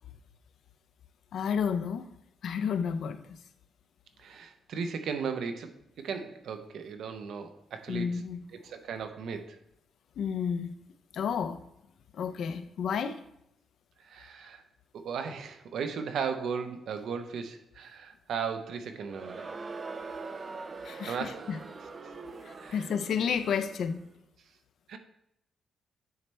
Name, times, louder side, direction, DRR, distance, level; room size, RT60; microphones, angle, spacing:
voice 1, 1.3-2.1 2.4-3.4 7.9-8.5 10.2-10.8 11.1-11.6 12.1-13.2 20.8-21.6 22.4-24.0, left 7 dB, 65° left, 11 dB, 0.5 m, -31 dB
voice 2, 4.2-8.2 8.5-9.6 14.0-14.6 14.9-19.5 21.1-21.4 22.6-22.8 24.9-25.0, right 6 dB, 65° right, 8 dB, 0.7 m, -36 dB
Crowd, 19.0-24.0, right 4 dB, 30° right, 0.4 m, -43 dB
9.3 x 3.3 x 4.2 m, 0.79 s
cardioid pair, 150°, 0 cm